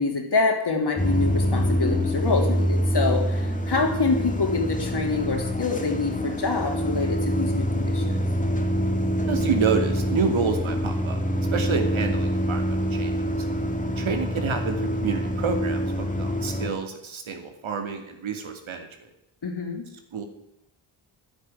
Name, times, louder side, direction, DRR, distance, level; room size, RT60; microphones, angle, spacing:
voice 1, 0.0-8.2 13.6-14.1 19.4-19.9, left 4 dB, 55° left, 2 dB, 3.4 m, -26 dB
sound 1, 1.0-16.7, equal, 15° left, 2.2 m, -25 dB
voice 2, 9.3-11.2 11.5-13.2 14.0-18.9 20.1-20.2, right 5 dB, 75° right, 5 dB, 2.6 m, -28 dB
11.0 x 9.8 x 9.7 m, 0.83 s
cardioid pair, 60°, 47 cm